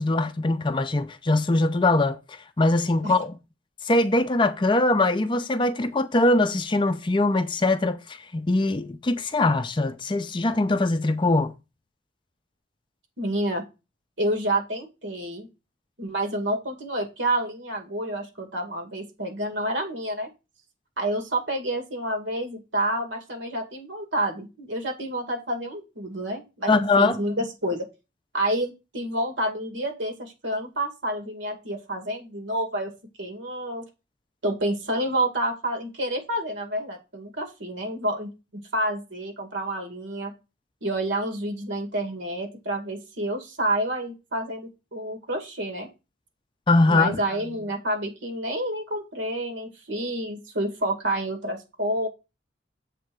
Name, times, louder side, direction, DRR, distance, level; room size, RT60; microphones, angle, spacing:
voice 1, 0.0-3.3 3.8-11.6 26.7-27.2 46.7-47.2, left 2 dB, 25° left, 0.4 m, -22 dB
voice 2, 13.2-13.6 14.2-15.5 16.0-20.3 21.0-27.9 28.3-32.9 33.2-33.8 34.4-38.3 38.7-40.3 40.8-45.9 46.9-52.1, right 1 dB, 75° right, 2.3 m, -29 dB
7.4 x 3.5 x 6.1 m
head